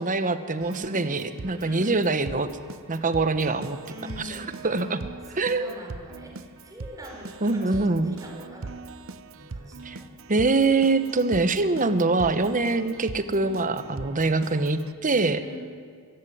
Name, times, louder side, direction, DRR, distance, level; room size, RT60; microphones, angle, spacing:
voice 1, 0.0-2.5 2.9-3.8 4.2-5.0 5.3-5.7 7.4-8.2 9.8-10.0 10.3-15.4, right 3 dB, 35° right, 11 dB, 1.2 m, -24 dB
Keyboard (musical), 0.6-14.9, right 3 dB, 65° right, 0.8 m, -41 dB
voice 2, 1.6-2.1 3.9-4.8 5.3-8.7 9.3-10.1 15.4-15.6, left 1 dB, 15° right, 0 dB, 4.7 m, -43 dB
23.5 x 14.0 x 9.5 m, 2.1 s
head